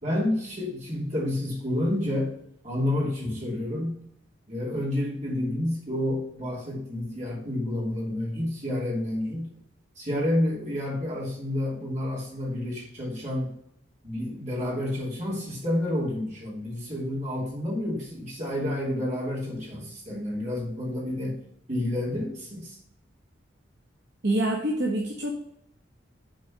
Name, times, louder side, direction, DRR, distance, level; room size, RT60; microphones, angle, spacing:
voice 1, 0.0-2.3 2.6-4.0 4.5-9.5 10.0-13.5 14.0-21.4 21.7-22.8, left 1 dB, 35° right, -5 dB, 2.8 m, -29 dB
voice 2, 24.2-25.3, right 1 dB, 60° right, -2 dB, 1.1 m, -26 dB
7.8 x 4.1 x 6.3 m, 0.72 s
head